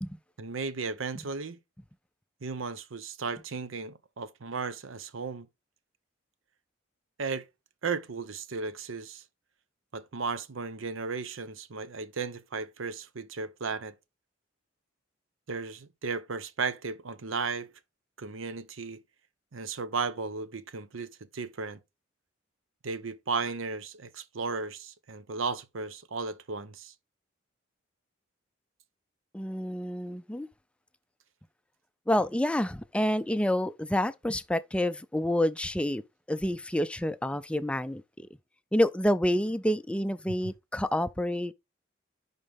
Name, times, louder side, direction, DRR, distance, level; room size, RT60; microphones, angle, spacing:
voice 1, 0.4-1.6 2.4-5.5 7.2-7.4 7.8-9.2 9.9-13.9 15.5-17.7 18.2-19.0 19.5-21.8 22.8-26.9, right 4 dB, 85° right, 0.7 m, -35 dB
voice 2, 29.3-30.5 32.1-36.0 36.3-38.3 38.7-41.5, left 1 dB, 5° left, 0.3 m, -28 dB
10.5 x 4.0 x 3.4 m
head